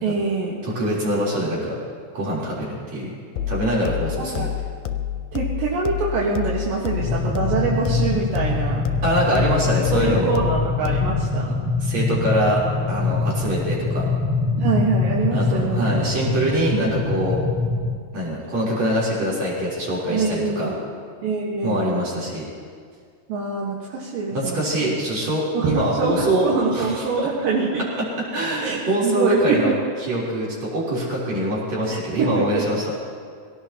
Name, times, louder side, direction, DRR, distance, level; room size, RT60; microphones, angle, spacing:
voice 1, 0.0-0.6 4.1-4.5 5.3-8.8 9.3-9.5 9.9-11.6 14.6-15.8 16.8-16.9 20.1-20.8 21.2-22.0 23.3-25.0 25.5-27.8 28.6-29.8 31.9-32.6, right 4 dB, 75° right, -4 dB, 3.1 m, -25 dB
voice 2, 0.6-1.8 2.1-3.1 3.4-4.5 9.0-10.4 11.8-14.1 15.3-17.4 18.1-20.7 21.6-22.5 24.3-27.3 28.3-29.7 30.0-33.0, equal, 50° right, -6 dB, 4.7 m, -24 dB
sound 1, 3.4-11.4, left 10 dB, 90° left, 2.4 m, -29 dB
sound 2, 7.0-18.0, left 3 dB, 15° left, 1.0 m, -24 dB
23.0 x 17.0 x 2.9 m, 2.1 s
omnidirectional pair, 4.1 m